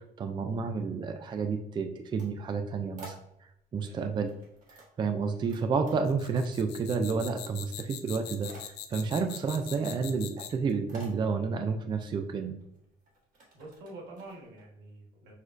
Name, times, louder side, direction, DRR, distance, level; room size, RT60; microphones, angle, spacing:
voice 1, 0.0-3.2 3.7-4.3 5.0-12.5, right 5 dB, 25° right, 7 dB, 0.3 m, -30 dB
sound 1, 1.9-3.7 4.2-5.6 5.9-6.7 7.0-7.6 7.9-14.6, right 2 dB, 50° right, 1.4 m, -53 dB
voice 2, 3.8-4.2 13.5-15.3, right 2 dB, 90° right, -1 dB, 1.4 m, -47 dB
sound 2, 6.1-10.7, left 11 dB, 85° left, 0.4 m, -42 dB
6.2 x 2.4 x 2.5 m, 0.80 s
cardioid pair, 110°, 17 cm